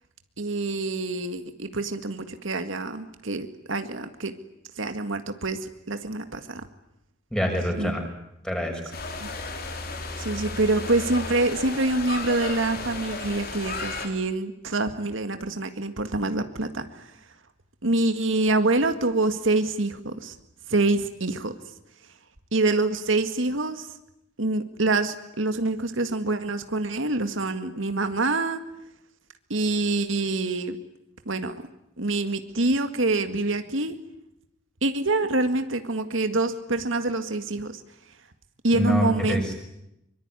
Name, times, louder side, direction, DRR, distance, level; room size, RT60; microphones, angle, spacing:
voice 1, 0.4-4.3 4.8-6.6 7.8-8.0 9.2-9.3 10.2-17.1 17.8-20.4 20.7-21.5 22.5-23.9 24.4-28.6 29.5-30.8 31.3-31.7 32.0-34.0 34.8-37.8 38.6-39.5, right 2 dB, 80° right, 8 dB, 1.9 m, -26 dB
voice 2, 7.3-8.0 8.4-8.8 38.7-39.5, equal, 5° left, 3 dB, 6.0 m, -25 dB
sound 1, 8.9-14.1, left 3 dB, 50° left, 4.1 m, -34 dB
24.5 x 24.0 x 9.8 m, 0.84 s
head